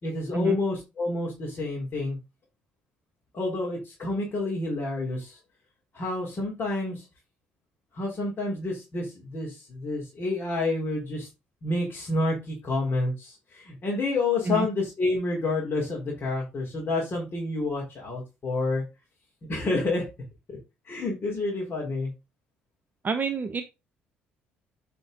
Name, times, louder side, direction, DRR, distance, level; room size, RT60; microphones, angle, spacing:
voice 1, 0.0-2.2 3.3-5.4 5.9-7.1 7.9-11.3 11.6-18.8 19.5-20.1 20.5-20.6 20.8-22.1, left 2 dB, 40° left, -3 dB, 4.0 m, -29 dB
voice 2, 23.0-23.6, right 4 dB, 35° right, 7 dB, 1.0 m, -27 dB
8.3 x 5.4 x 4.0 m, 0.25 s
hypercardioid pair, 55°, 5 cm